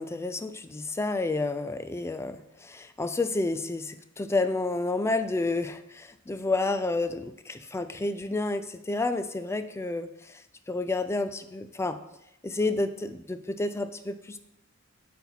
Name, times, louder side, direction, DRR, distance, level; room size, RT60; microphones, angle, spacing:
voice 1, 0.0-10.4 10.7-12.0 12.4-14.4, left 2 dB, 10° left, 10 dB, 0.3 m, -30 dB
8.2 x 4.2 x 4.1 m, 0.83 s
head